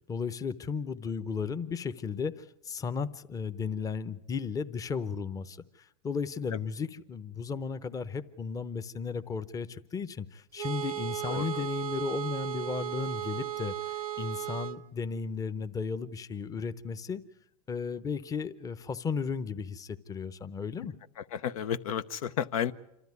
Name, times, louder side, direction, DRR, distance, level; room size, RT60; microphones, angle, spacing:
voice 1, 0.1-17.2 17.7-20.9, left 5 dB, 20° left, 12 dB, 0.8 m, -35 dB
sound 1, 10.6-14.8, right 11 dB, 90° right, 0.8 m, -35 dB
voice 2, 11.3-11.6 21.3-22.7, left 9 dB, 75° left, 12 dB, 0.7 m, -32 dB
27.0 x 13.0 x 9.5 m, 0.89 s
hypercardioid pair, 110°, 18 cm